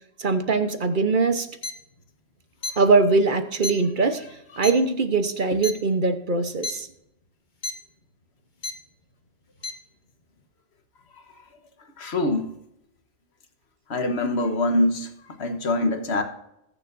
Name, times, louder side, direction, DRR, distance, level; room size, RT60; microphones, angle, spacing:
voice 1, 0.2-1.5 2.8-4.2 4.6-6.9, right 3 dB, 45° right, 8 dB, 1.1 m, -21 dB
sound 1, 1.6-1.7 2.6-2.7 3.6-3.7 4.6-4.7 5.6-5.7 6.6-6.7 7.6-7.7 8.6-8.7 9.6-9.7, left 3 dB, 40° left, 1.3 m, -29 dB
voice 2, 12.0-12.5 13.9-15.1 15.4-16.2, left 1 dB, 60° left, 5 dB, 1.5 m, -24 dB
21.0 x 7.0 x 2.6 m, 0.81 s
omnidirectional pair, 1.3 m